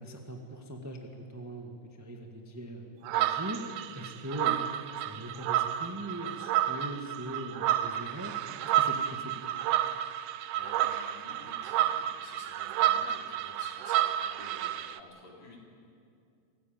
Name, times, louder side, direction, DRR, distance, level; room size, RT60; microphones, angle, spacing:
voice 1, 0.0-4.6 5.0-9.7, right 1 dB, 10° right, 2 dB, 1.0 m, -41 dB
sound 1, 3.0-15.0, right 12 dB, 80° right, 2.1 m, -30 dB
voice 2, 10.5-15.6, left 2 dB, 60° left, -2 dB, 5.1 m, -51 dB
26.0 x 16.5 x 9.0 m, 2.4 s
omnidirectional pair, 3.5 m